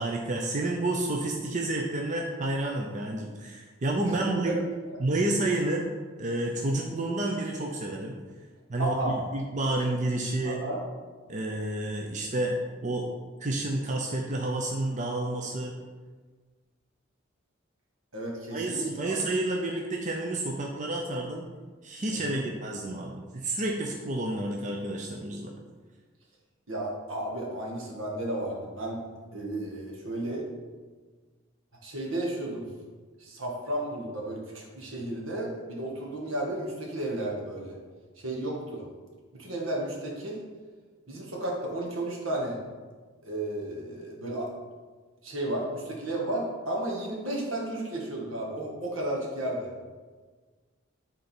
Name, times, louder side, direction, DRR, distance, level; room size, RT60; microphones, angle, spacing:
voice 1, 0.0-4.6 5.0-5.9 6.2-8.1 8.7-10.6 11.3-13.1 13.4-15.7 18.5-21.4 21.8-25.5, right 2 dB, 40° right, 0 dB, 0.6 m, -30 dB
voice 2, 4.2-4.5 4.9-5.0 8.8-9.2 10.4-10.8 18.1-19.2 22.1-22.4 26.7-29.0 29.3-30.5 31.8-32.6 33.2-37.8 38.2-38.8 39.3-40.4 41.1-42.6 43.2-44.5 45.2-49.7, right 1 dB, 80° right, -2 dB, 1.8 m, -33 dB
9.9 x 3.9 x 4.4 m, 1.4 s
head